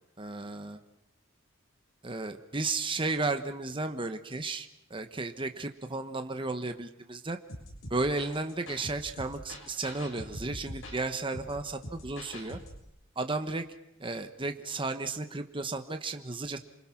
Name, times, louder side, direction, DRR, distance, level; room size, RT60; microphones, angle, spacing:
voice 1, 0.2-0.8 2.0-7.4 7.9-12.6 13.2-13.6 14.0-16.6, right 3 dB, 25° right, 7 dB, 1.3 m, -34 dB
sound 1, 7.5-12.8, left 1 dB, 75° left, 6.7 m, -44 dB
28.5 x 24.5 x 6.0 m, 0.83 s
head